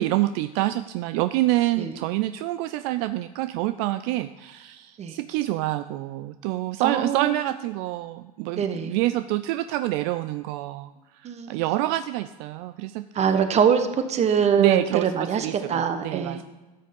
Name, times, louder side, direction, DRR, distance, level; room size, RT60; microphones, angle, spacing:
voice 1, 0.0-10.9 11.2-13.1 14.6-15.1 15.4-16.4, right 16 dB, 65° right, 11 dB, 0.5 m, -27 dB
voice 2, 6.8-7.4 8.6-9.0 11.2-11.6 13.1-16.4, right 7 dB, 30° right, 8 dB, 1.2 m, -23 dB
13.0 x 6.5 x 5.3 m, 1.2 s
supercardioid pair, 110°, 21 cm